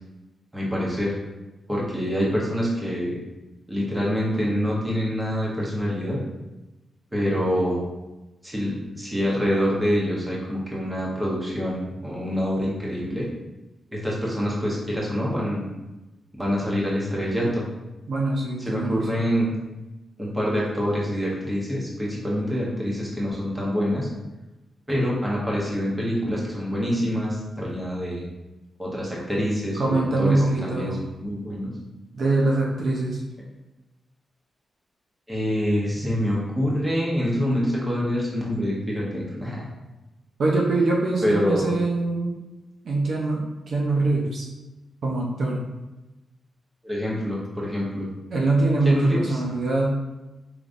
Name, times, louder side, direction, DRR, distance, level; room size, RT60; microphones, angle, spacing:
voice 1, 0.5-1.1 1.7-3.2 3.7-6.2 7.1-7.8 8.4-13.3 13.9-15.7 16.4-17.7 18.7-19.5 20.2-24.1 24.9-28.3 28.8-31.7 35.3-39.7 41.2-41.8 46.8-48.1 48.8-49.4, equal, 10° right, -5 dB, 1.0 m, -26 dB
voice 2, 18.1-19.3 29.8-31.0 32.1-33.2 40.4-42.4 42.8-44.4 45.0-45.7 48.3-50.0, right 2 dB, 55° right, -2 dB, 0.7 m, -23 dB
5.0 x 3.0 x 2.6 m, 1.0 s
wide cardioid pair, 160°, 0 cm